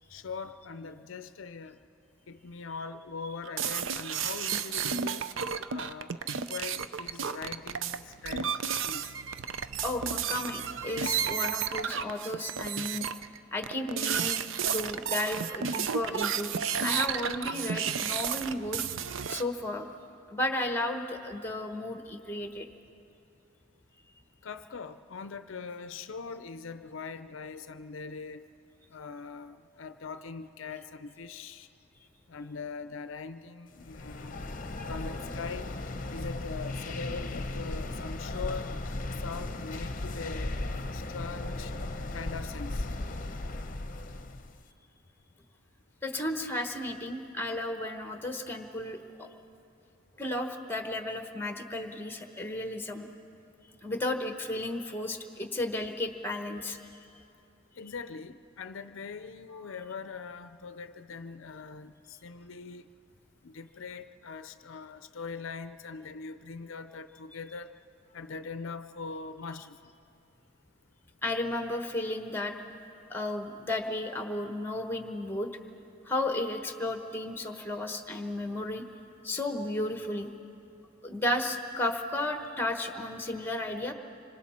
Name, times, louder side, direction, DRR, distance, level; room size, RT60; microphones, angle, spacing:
voice 1, 0.1-1.8 2.3-5.3 5.7-8.5 8.8-9.1 24.4-28.5 28.9-31.7 32.3-34.4 34.9-35.7 36.1-38.8 39.2-40.5 40.9-41.7 42.1-42.9 57.8-62.8 63.4-67.7 68.1-69.9, left 4 dB, 65° left, 11 dB, 0.5 m, -41 dB
sound 1, 3.4-13.4 13.6-19.4, right 7 dB, 65° right, 0.5 m, -32 dB
voice 2, 9.8-13.0 13.5-14.4 14.7-16.5 16.8-18.8 19.3-19.9 20.3-22.7 46.0-49.3 50.2-53.1 53.8-56.8 71.2-72.5 73.1-75.5 76.0-78.8 79.2-80.3 81.0-83.9, left 1 dB, 10° left, 5 dB, 1.0 m, -33 dB
sound 2, 33.8-44.6, left 2 dB, 40° left, 0.8 m, -36 dB
26.0 x 25.0 x 4.3 m, 2.6 s
head